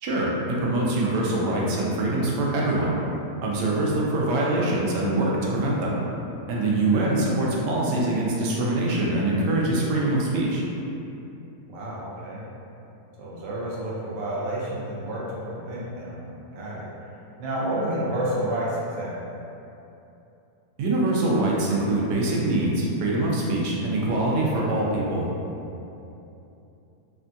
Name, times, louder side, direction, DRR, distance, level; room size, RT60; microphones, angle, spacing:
voice 1, 0.0-2.9 3.4-6.0 6.5-10.6 20.8-25.3, right 2 dB, 85° right, -4 dB, 1.2 m, -24 dB
voice 2, 11.6-12.5 13.2-16.9 17.4-19.4, right 1 dB, 65° right, -6 dB, 0.6 m, -30 dB
3.4 x 2.2 x 2.5 m, 2.9 s
omnidirectional pair, 1.8 m